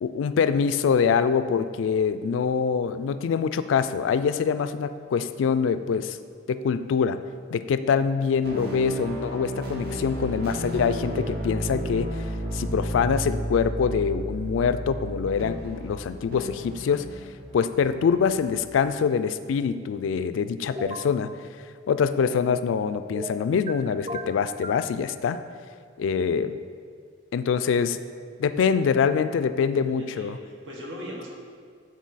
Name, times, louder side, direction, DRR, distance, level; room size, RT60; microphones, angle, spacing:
voice 1, 0.0-6.2 6.5-7.2 7.5-12.2 12.5-17.1 17.5-21.3 21.9-25.4 26.0-26.6 27.3-28.0 28.4-30.4, left 6 dB, 85° left, 12 dB, 0.3 m, -24 dB
voice 2, 7.9-8.3 26.2-26.4 29.7-31.3, equal, 80° right, -2 dB, 1.4 m, -41 dB
sound 1, 8.4-18.7, right 1 dB, 55° right, 0.9 m, -33 dB
sound 2, 20.8-21.1 23.2-23.7 24.1-24.9, equal, 30° right, 0.3 m, -35 dB
8.4 x 4.0 x 4.0 m, 2.1 s
head